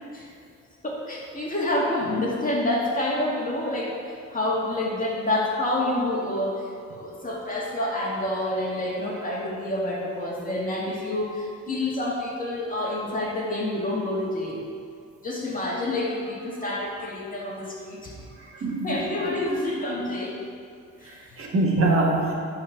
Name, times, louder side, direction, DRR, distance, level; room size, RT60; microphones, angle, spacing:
voice 1, 0.8-4.0 4.3-6.7 6.9-14.6 15.2-18.1 18.8-20.4 21.0-21.3, left 1 dB, 25° left, -4 dB, 2.2 m, -28 dB
voice 2, 18.6-19.0 21.1-22.3, right 2 dB, 45° right, -2 dB, 1.7 m, -23 dB
10.5 x 4.4 x 5.9 m, 2.4 s
cardioid pair, 90°, 30 cm